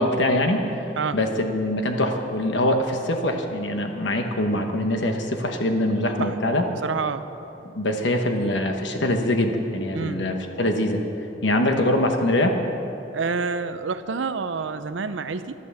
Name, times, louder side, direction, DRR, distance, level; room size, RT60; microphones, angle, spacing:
voice 1, 0.0-6.6 7.6-11.0 11.4-12.6, left 1 dB, 70° left, 4 dB, 1.1 m, -23 dB
voice 2, 6.8-7.3 9.9-10.2 13.1-15.5, right 4 dB, 85° right, 11 dB, 0.7 m, -28 dB
12.5 x 12.0 x 7.1 m, 2.9 s
head